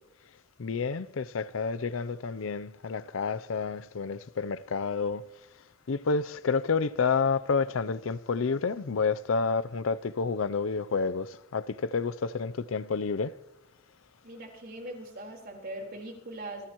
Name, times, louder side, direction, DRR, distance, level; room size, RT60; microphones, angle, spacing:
voice 1, 0.6-5.2 5.9-13.3, left 5 dB, 75° left, 0.5 m, -29 dB
voice 2, 14.2-16.7, right 1 dB, 50° right, 4.2 m, -41 dB
26.5 x 15.5 x 3.0 m
head